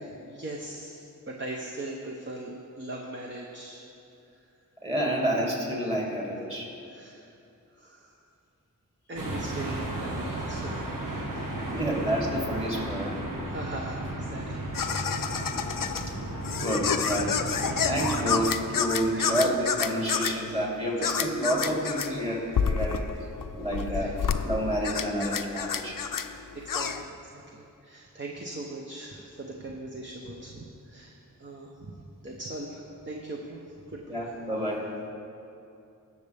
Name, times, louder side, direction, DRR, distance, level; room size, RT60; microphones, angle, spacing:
voice 1, 0.0-3.8 6.8-7.3 7.8-8.1 9.1-11.6 13.5-15.5 19.1-19.5 21.0-21.1 23.9-24.1 26.5-33.6 33.9-34.2, right 2 dB, 35° right, -1 dB, 1.0 m, -40 dB
voice 2, 4.8-6.7 11.7-13.1 16.1-16.2 16.5-17.3 17.8-23.1 23.5-24.1 24.4-26.0 34.1-34.9, equal, 20° right, -3 dB, 2.8 m, -29 dB
sound 1, 9.1-18.4, right 1 dB, 85° right, 1.4 m, -34 dB
sound 2, 14.7-27.0, left 6 dB, 80° left, 0.6 m, -29 dB
19.0 x 6.7 x 3.5 m, 2.7 s
wide cardioid pair, 60°, 32 cm